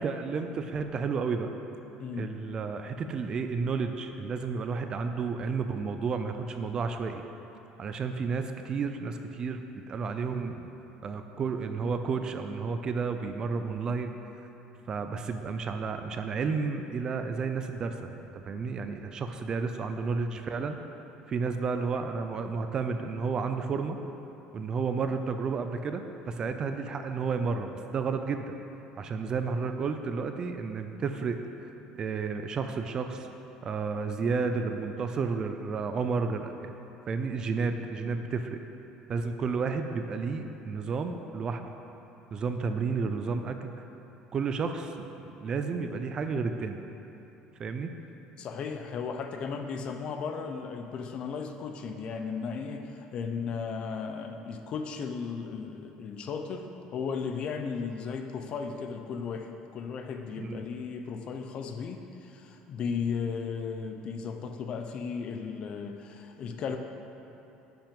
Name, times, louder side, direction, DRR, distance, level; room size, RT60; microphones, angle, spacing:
voice 1, 0.0-1.5 2.2-7.2 7.8-10.7 11.0-14.5 14.9-20.8 21.3-24.0 24.5-28.5 29.0-31.7 32.0-33.3 33.6-36.7 37.1-38.6 39.1-41.7 42.3-43.9 44.3-46.8 47.6-47.9 60.4-60.6, right 5 dB, 30° right, 7 dB, 0.4 m, -32 dB
voice 2, 2.0-2.4 48.4-66.8, left 5 dB, 40° left, 6 dB, 0.6 m, -35 dB
10.0 x 5.9 x 5.2 m, 3.0 s
cardioid pair, 160°, 3 cm